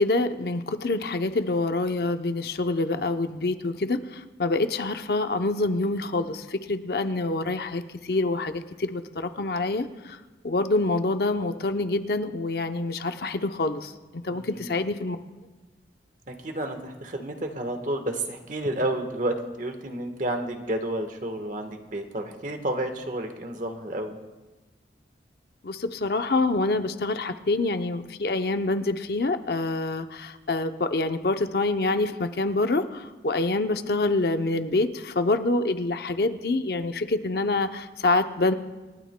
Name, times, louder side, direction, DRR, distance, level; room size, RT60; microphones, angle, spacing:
voice 1, 0.0-10.2 10.4-15.2 25.6-38.5, left 2 dB, 60° left, 8 dB, 0.6 m, -26 dB
voice 2, 14.3-14.7 16.3-24.2, right 1 dB, 45° right, 5 dB, 1.3 m, -31 dB
28.0 x 12.5 x 2.2 m, 1.2 s
head